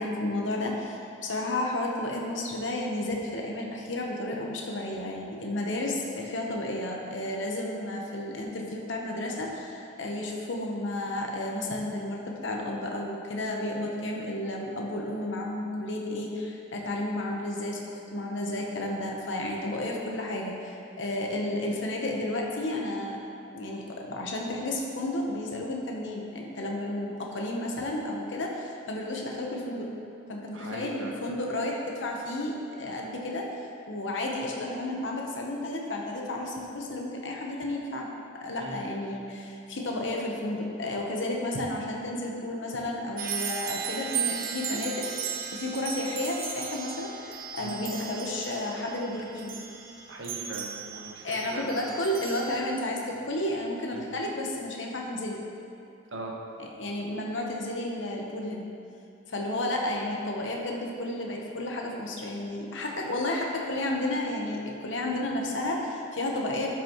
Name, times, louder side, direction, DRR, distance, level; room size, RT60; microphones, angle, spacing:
voice 1, 0.0-23.2 23.5-29.9 30.3-38.1 38.4-45.1 45.5-49.5 51.2-55.4 56.6-58.7 59.3-66.7, left 1 dB, 70° left, -1 dB, 1.0 m, -32 dB
voice 2, 30.5-31.2 38.6-38.8 47.6-47.7 50.1-51.7 53.9-54.1 56.1-56.4, right 2 dB, 75° right, -1 dB, 1.2 m, -39 dB
sound 1, 43.2-52.6, right 7 dB, 50° right, 0.6 m, -36 dB
11.5 x 6.0 x 3.1 m, 2.5 s
head